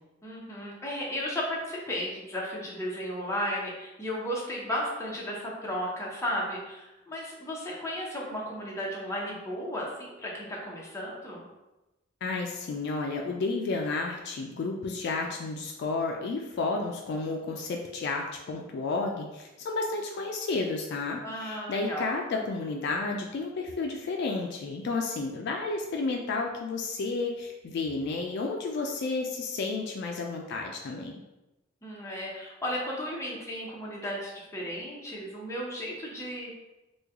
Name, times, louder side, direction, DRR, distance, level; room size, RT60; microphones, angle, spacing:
voice 1, 0.2-11.5 21.2-22.1 31.8-36.5, equal, 15° left, -4 dB, 0.7 m, -34 dB
voice 2, 12.2-31.1, left 3 dB, 55° left, 1 dB, 0.3 m, -32 dB
3.1 x 2.2 x 3.5 m, 1.0 s
head